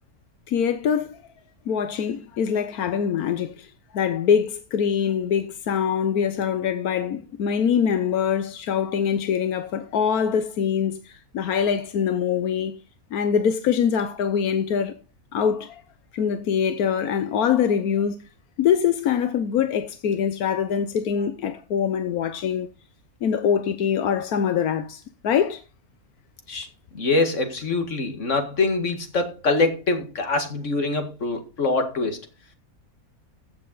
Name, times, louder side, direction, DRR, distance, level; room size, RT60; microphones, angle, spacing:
voice 1, 0.5-1.2 1.7-3.7 3.9-12.7 13.1-14.9 15.3-15.8 16.1-18.2 18.6-22.7 23.2-25.6, left 7 dB, 85° left, 1.3 m, -24 dB
voice 2, 26.9-32.2, left 3 dB, 55° left, 2.3 m, -24 dB
15.5 x 7.3 x 4.0 m
omnidirectional pair, 1.5 m